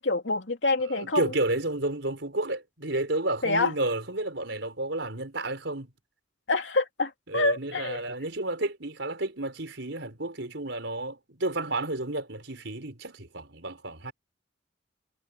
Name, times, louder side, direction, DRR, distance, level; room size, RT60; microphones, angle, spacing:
voice 1, 0.0-1.3 3.4-3.7 6.5-8.0, left 2 dB, 75° left, 2.7 m, -26 dB
voice 2, 0.8-5.9 7.3-14.1, right 2 dB, 70° right, 4.9 m, -31 dB
head